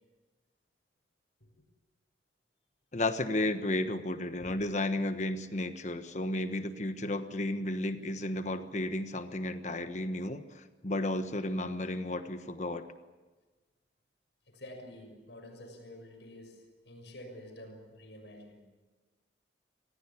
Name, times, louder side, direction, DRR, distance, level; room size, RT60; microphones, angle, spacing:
voice 1, 2.9-12.8, left 1 dB, 40° left, 9 dB, 1.2 m, -33 dB
voice 2, 14.5-18.6, left 1 dB, 75° left, 4 dB, 6.7 m, -49 dB
26.0 x 17.5 x 8.5 m, 1.3 s
head